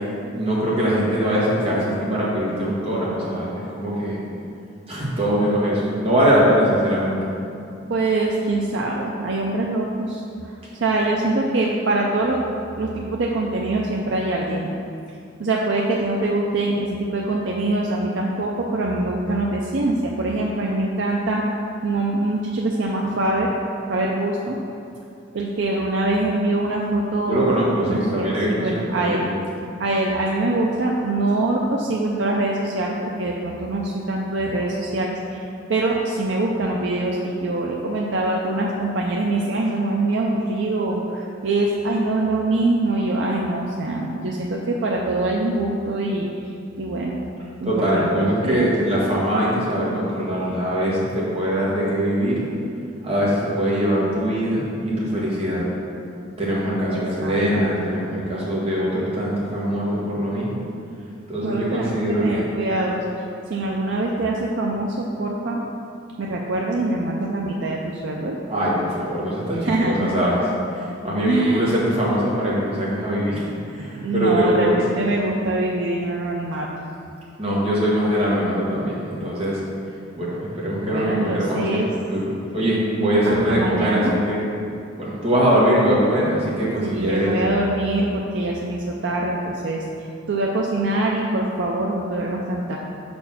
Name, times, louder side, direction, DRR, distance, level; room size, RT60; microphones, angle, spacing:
voice 1, 0.3-4.2 4.9-7.2 27.3-29.3 47.6-52.4 53.0-55.6 56.4-60.6 61.3-62.5 68.5-70.4 70.7-73.5 73.7-74.8 77.4-79.6 80.1-82.2 82.5-84.4 85.0-87.4, equal, 30° right, -6 dB, 1.6 m, -22 dB
voice 2, 7.9-10.5 10.8-12.4 12.8-14.7 15.4-23.5 23.9-24.6 25.3-29.3 29.8-46.3 46.8-47.2 47.6-48.7 57.2-57.7 61.4-63.0 63.5-65.6 66.2-68.4 69.6-70.2 71.2-71.8 74.0-76.7 80.8-81.9 83.3-84.2 86.8-92.8, right 2 dB, 75° right, -2 dB, 0.5 m, -24 dB
5.5 x 4.3 x 5.8 m, 2.6 s
head